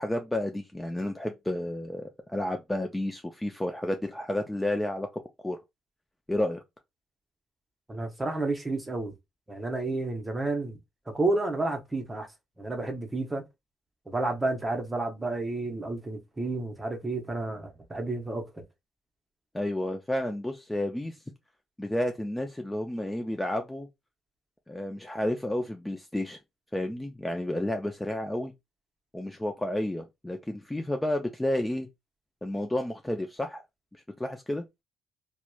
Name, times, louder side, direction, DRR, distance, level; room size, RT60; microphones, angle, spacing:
voice 1, 0.0-5.1 5.4-5.6 6.3-6.6 19.5-21.2 21.8-23.9 24.7-26.4 26.7-28.5 29.1-31.9 32.4-33.6 33.9-34.7, left 1 dB, 10° left, 0.3 m, -31 dB
voice 2, 7.9-9.1 9.5-10.8 11.1-12.3 12.6-13.4 14.1-18.6, right 2 dB, 20° right, 0.7 m, -31 dB
2.8 x 2.1 x 2.2 m
cardioid pair, 90°, 0 cm